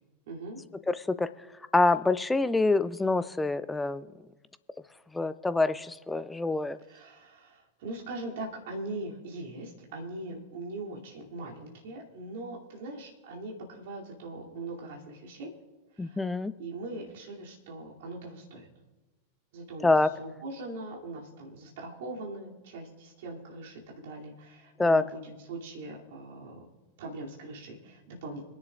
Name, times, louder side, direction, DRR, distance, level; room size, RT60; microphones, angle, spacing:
voice 1, 0.3-0.6 6.9-15.5 15.9-18.7 19.5-26.7 27.0-28.4, right 2 dB, 55° right, -2 dB, 2.8 m, -41 dB
voice 2, 0.9-1.3 1.7-4.0 5.1-6.8 16.0-16.5 19.8-20.1 24.8-25.1, left 3 dB, 10° left, 15 dB, 0.5 m, -25 dB
26.5 x 10.5 x 2.5 m, 1.2 s
figure-of-eight pair, 90°, 0 cm